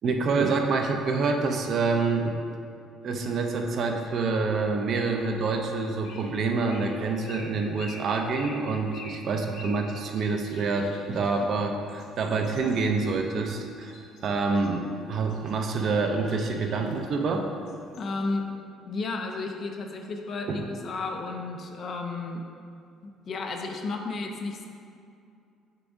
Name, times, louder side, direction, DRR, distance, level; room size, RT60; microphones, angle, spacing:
voice 1, 0.0-2.4 3.0-14.0 14.2-17.5 20.5-20.6, right 4 dB, 40° right, 3 dB, 0.5 m, -27 dB
sound 1, 5.7-18.4, left 2 dB, 65° left, 0.9 m, -49 dB
voice 2, 18.0-18.5 18.9-22.4 23.3-24.7, left 3 dB, 35° left, 3 dB, 0.4 m, -32 dB
6.7 x 6.0 x 2.6 m, 2.4 s
cardioid pair, 180°, 0 cm